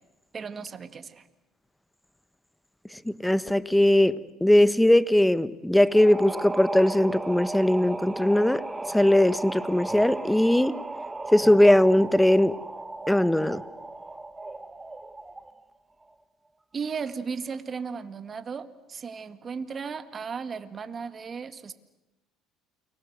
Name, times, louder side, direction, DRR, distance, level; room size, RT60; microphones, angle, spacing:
voice 1, 0.3-1.2 16.7-21.7, right 5 dB, 35° right, 11 dB, 2.0 m, -35 dB
voice 2, 3.0-10.8 11.3-12.6 13.1-13.6, left 1 dB, 5° left, 16 dB, 1.2 m, -20 dB
sound 1, 5.9-15.6, right 2 dB, 15° right, 1.4 m, -36 dB
29.5 x 23.5 x 8.1 m, 1.0 s
supercardioid pair, 80°, 0 cm